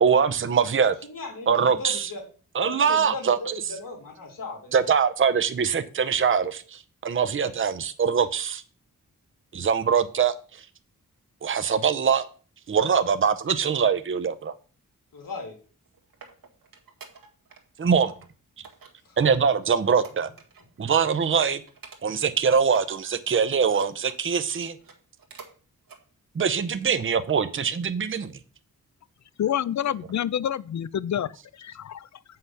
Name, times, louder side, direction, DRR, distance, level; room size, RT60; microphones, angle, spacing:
voice 1, 0.0-0.9 1.5-2.1 2.5-3.5 4.7-8.6 9.5-10.6 11.4-12.3 12.7-14.5 17.8-18.1 19.2-20.3 20.8-21.6 22.0-24.8 26.3-28.3, right 6 dB, 40° right, 0.7 m, -23 dB
voice 2, 1.0-2.2 2.6-4.9 7.4-7.5 15.1-15.5 19.1-19.2, left 3 dB, 80° left, 2.9 m, -37 dB
sound 1, 15.7-17.6 17.9-18.3 18.6-20.8 21.1-21.3 21.7-22.3 22.6-24.2 24.7-25.6 25.8-26.0 26.5-26.6, right 5 dB, 90° right, 1.7 m, -49 dB
voice 3, 29.4-31.3 31.6-32.1, left 10 dB, 60° left, 0.5 m, -27 dB
7.8 x 5.7 x 5.7 m
wide cardioid pair, 90°, 33 cm